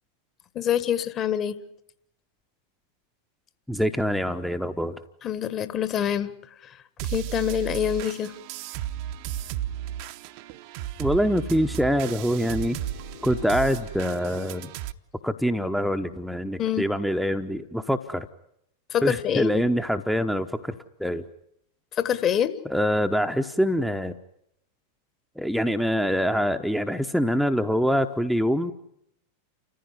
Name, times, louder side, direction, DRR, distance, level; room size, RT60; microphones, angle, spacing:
voice 1, 0.5-1.6 5.2-6.3 6.6-6.8 7.0-8.3 16.6-16.9 18.9-19.6 21.9-22.6, left 9 dB, 30° left, 12 dB, 1.6 m, -26 dB
voice 2, 3.7-5.0 11.0-12.8 13.2-14.7 15.2-18.3 19.0-21.2 22.6-24.1 25.4-28.7, equal, ahead, 7 dB, 0.9 m, -25 dB
sound 1, 7.0-14.9, right 13 dB, 45° right, 0.9 m, -34 dB
sound 2, 11.9-14.9, left 6 dB, 65° left, 3.0 m, -49 dB
29.5 x 15.0 x 9.6 m, 0.77 s
figure-of-eight pair, 90°, 0 cm